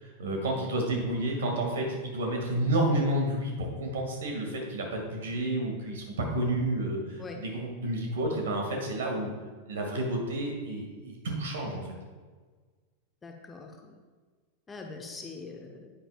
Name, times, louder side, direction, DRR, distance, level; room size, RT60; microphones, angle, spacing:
voice 1, 0.0-9.3 9.7-11.9, right 1 dB, 60° right, 1 dB, 2.1 m, -30 dB
voice 2, 13.2-14.0 14.7-15.9, left 4 dB, 15° left, 2 dB, 1.0 m, -43 dB
10.0 x 8.9 x 2.4 m, 1.5 s
figure-of-eight pair, 90°, 0 cm